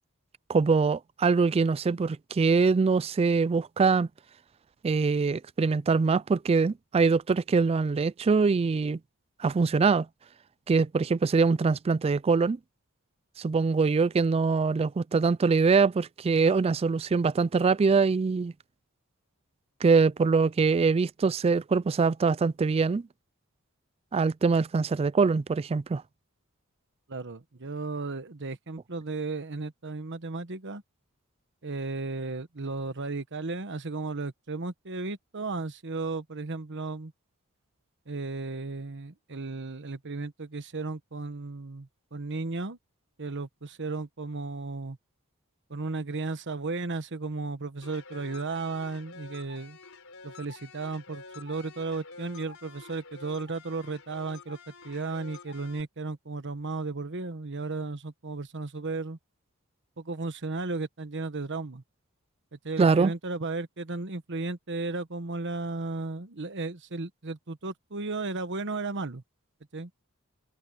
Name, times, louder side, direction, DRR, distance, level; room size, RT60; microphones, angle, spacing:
voice 1, 0.5-4.1 4.8-9.0 9.4-10.1 10.7-12.6 13.4-18.5 19.8-23.0 24.1-26.0 62.8-63.1, right 4 dB, 25° right, 0.3 m, -23 dB
voice 2, 27.1-30.8 31.6-37.1 38.1-42.8 43.2-45.0 45.7-49.8 50.2-54.6 54.8-59.2 60.0-61.8 62.5-69.2 69.7-69.9, right 3 dB, 55° right, 1.2 m, -34 dB
sound 1, 47.8-55.8, left 4 dB, 65° left, 5.0 m, -48 dB
head